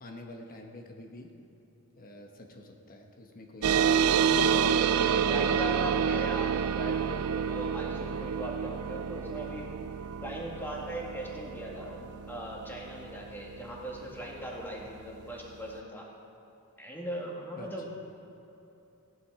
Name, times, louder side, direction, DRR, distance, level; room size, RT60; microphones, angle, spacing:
voice 1, 0.0-1.3 2.0-3.8 4.6-5.4 17.6-17.7, left 1 dB, 40° left, 3 dB, 1.1 m, -47 dB
sound 1, 3.6-14.5, right 7 dB, 75° right, 0.4 m, -28 dB
voice 2, 4.9-9.7 10.2-16.1 16.8-17.9, equal, 10° left, -3 dB, 2.1 m, -39 dB
15.5 x 10.5 x 4.8 m, 2.9 s
head